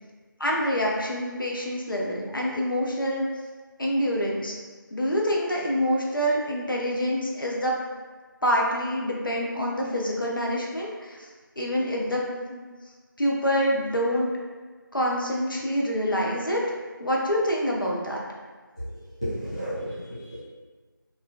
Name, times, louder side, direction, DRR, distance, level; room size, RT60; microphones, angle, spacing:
voice 1, 0.4-3.3 3.8-4.5 4.9-7.7 8.4-11.2 11.6-12.6 13.2-14.3 14.9-16.6 17.0-18.2, equal, 75° left, -2 dB, 0.7 m, -26 dB
voice 2, 19.2-20.4, equal, 15° left, -14 dB, 0.7 m, -32 dB
4.0 x 2.6 x 2.2 m, 1.4 s
figure-of-eight pair, 170°, 11 cm